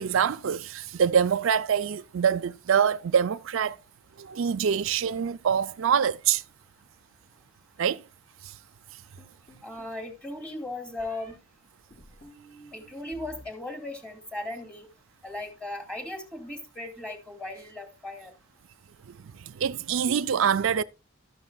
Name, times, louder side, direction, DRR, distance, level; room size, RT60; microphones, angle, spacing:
voice 1, 0.0-3.8 4.2-6.4 7.8-8.0 8.4-8.5 19.4-20.8, right 7 dB, 70° right, 0.4 m, -25 dB
sound 1, 9.2-10.0 11.0-11.3 11.9-13.4 13.7-14.3, right 1 dB, 45° left, 5.4 m, -52 dB
voice 2, 9.6-11.4 12.7-14.9 15.2-18.3, left 2 dB, 5° left, 2.4 m, -37 dB
13.0 x 11.5 x 2.3 m
head